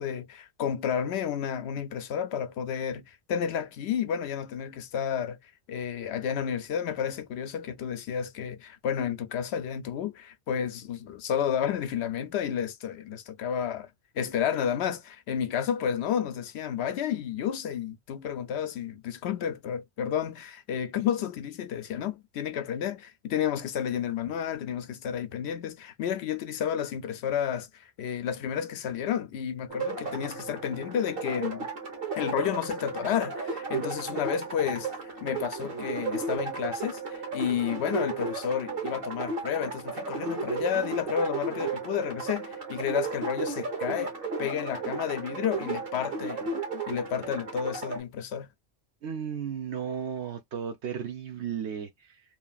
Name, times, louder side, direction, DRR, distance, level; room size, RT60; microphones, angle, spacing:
voice 1, 0.0-13.9 14.1-31.7 32.2-44.1 44.4-46.5 46.9-48.5, left 8 dB, 70° left, 0.8 m, -31 dB
sound 1, 29.7-48.0, right 4 dB, 55° right, 1.2 m, -34 dB
voice 2, 49.0-52.2, right 8 dB, 70° right, 0.9 m, -34 dB
3.1 x 2.4 x 2.3 m
omnidirectional pair, 1.2 m